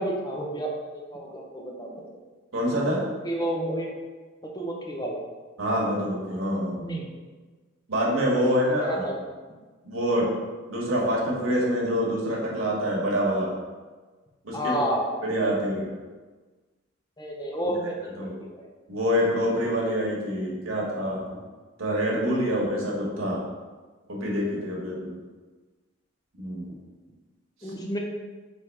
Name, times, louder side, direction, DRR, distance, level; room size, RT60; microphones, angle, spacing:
voice 1, 0.0-1.9 3.2-3.9 4.5-5.2 6.8-7.1 8.6-9.2 14.5-15.1 17.2-18.6 27.6-28.0, right 1 dB, 20° left, -1 dB, 0.6 m, -30 dB
voice 2, 2.5-3.0 5.6-6.8 7.9-9.1 9.8-10.3 10.7-13.5 14.4-14.8 15.2-15.9 18.2-18.3 18.9-21.3 21.8-23.4 24.1-25.2 26.4-26.7 27.6-27.7, equal, 80° right, -4 dB, 1.2 m, -26 dB
4.3 x 3.4 x 3.4 m, 1.3 s
head